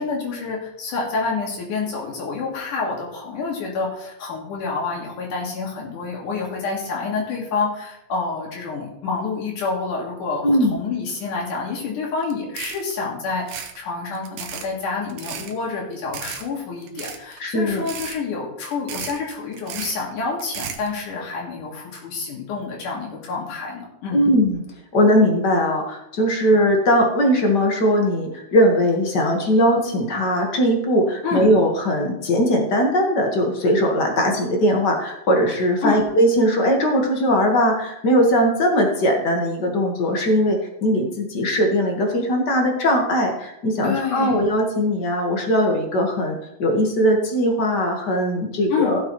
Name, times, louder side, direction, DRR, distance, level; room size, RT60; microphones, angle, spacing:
voice 1, 0.0-24.3 31.2-31.5 35.8-36.0 43.8-44.4 48.7-49.0, left 4 dB, 70° left, -1 dB, 3.5 m, -28 dB
voice 2, 10.4-10.7 17.4-17.8 24.1-24.6 24.9-49.0, equal, 45° left, 2 dB, 1.5 m, -19 dB
sound 1, 12.2-12.3 12.6-12.9 13.4-13.8 14.1-14.7 15.1-15.5 16.1-16.5 16.8-17.4 17.7-18.2 18.6-19.2 19.5-19.9 20.4-20.9, right 8 dB, 80° right, 2.3 m, -34 dB
15.5 x 7.4 x 3.1 m, 0.82 s
omnidirectional pair, 3.7 m